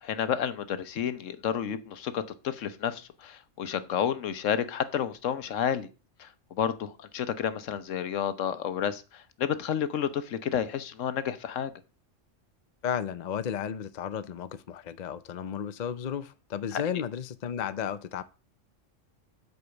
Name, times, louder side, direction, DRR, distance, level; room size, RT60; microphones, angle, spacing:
voice 1, 0.0-5.9 6.2-11.7 16.7-17.0, left 8 dB, 80° left, 1.2 m, -31 dB
voice 2, 12.8-18.2, left 8 dB, 45° left, 0.6 m, -33 dB
8.2 x 4.7 x 6.9 m
omnidirectional pair, 1.3 m